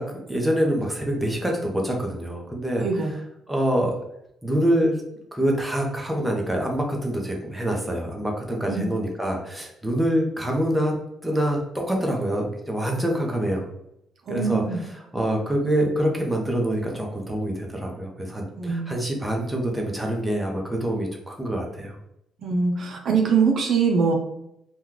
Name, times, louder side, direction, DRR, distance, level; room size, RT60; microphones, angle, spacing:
voice 1, 0.0-2.9 3.5-4.0 4.4-5.0 5.3-10.9 11.2-13.6 14.3-22.0, right 1 dB, 10° right, 0 dB, 0.8 m, -25 dB
voice 2, 2.8-3.1 8.7-8.9 14.3-14.8 18.6-18.9 22.4-24.1, right 5 dB, 60° right, 2 dB, 0.5 m, -23 dB
2.9 x 2.3 x 3.8 m, 0.80 s
cardioid pair, 90°, 0 cm